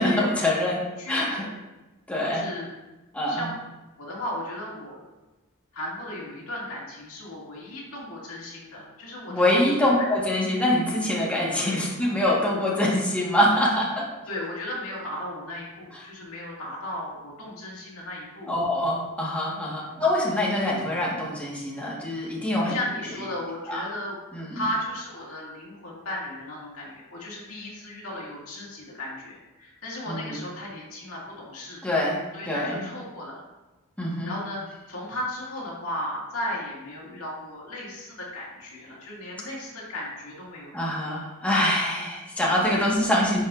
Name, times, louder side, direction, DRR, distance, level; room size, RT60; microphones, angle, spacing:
voice 1, 0.0-1.4 2.1-2.4 3.1-3.5 9.3-14.1 18.5-22.7 23.7-23.8 24.3-24.6 30.1-30.4 31.8-32.2 32.5-32.9 34.0-34.3 40.7-43.4, left 1 dB, 5° left, -5 dB, 1.3 m, -24 dB
voice 2, 1.0-1.5 2.2-2.7 3.3-3.6 4.0-5.0 5.7-9.8 11.6-11.8 14.3-18.5 19.8-19.9 22.6-24.2 24.5-31.8 32.3-33.4 34.2-34.6 34.9-40.7, left 1 dB, 75° left, -4 dB, 2.1 m, -35 dB
11.0 x 5.2 x 2.5 m, 1.1 s
head